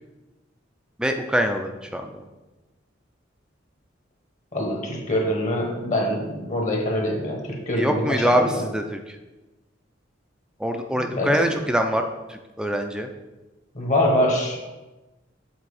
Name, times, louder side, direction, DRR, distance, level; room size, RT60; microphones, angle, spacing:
voice 1, 1.0-2.2 7.8-9.0 10.6-13.1, equal, 5° right, 5 dB, 0.4 m, -24 dB
voice 2, 4.5-8.7 11.0-11.5 13.7-14.7, left 1 dB, 40° left, 1 dB, 1.3 m, -24 dB
7.6 x 4.4 x 4.8 m, 1.1 s
head